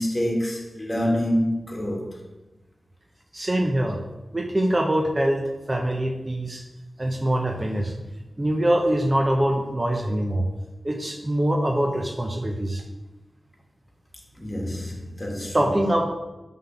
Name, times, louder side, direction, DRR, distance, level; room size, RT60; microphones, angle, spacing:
voice 1, 0.0-2.2 14.4-15.8, equal, 25° left, 1.9 m, -27 dB
voice 2, 3.3-4.0 4.3-5.4 5.7-6.6 7.0-8.0 8.4-10.5 10.8-12.8 15.5-16.0, right 1 dB, 35° right, 0.9 m, -23 dB
5.7 x 3.7 x 5.7 m
cardioid pair, 40°, 0 cm